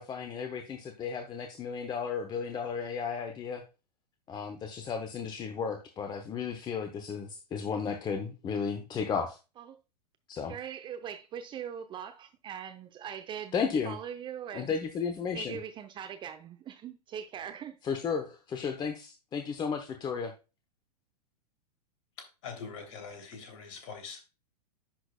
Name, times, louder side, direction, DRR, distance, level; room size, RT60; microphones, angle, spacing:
voice 1, 0.0-3.6 4.3-9.4 10.3-10.5 13.5-14.0 14.5-15.6 17.8-20.3, left 6 dB, 20° left, 0.8 m, -34 dB
voice 2, 10.5-13.6 13.8-14.7 15.3-17.8, right 8 dB, 25° right, 0.7 m, -41 dB
voice 3, 22.4-24.2, left 5 dB, 50° left, 2.9 m, -43 dB
10.5 x 6.1 x 2.3 m
figure-of-eight pair, 100°, 21 cm